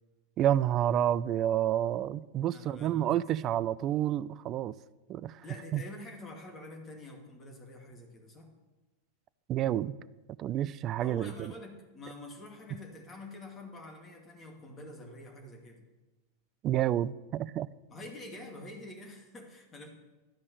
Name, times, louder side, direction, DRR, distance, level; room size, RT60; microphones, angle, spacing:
voice 1, 0.4-4.7 5.1-5.4 5.7-5.8 9.5-9.9 10.4-11.5 16.6-17.7, right 11 dB, 35° right, 0.3 m, -29 dB
voice 2, 2.5-3.1 5.4-8.5 11.0-15.8 17.9-19.9, left 1 dB, 20° left, 2.2 m, -46 dB
12.0 x 5.3 x 8.0 m
figure-of-eight pair, 90°, 0 cm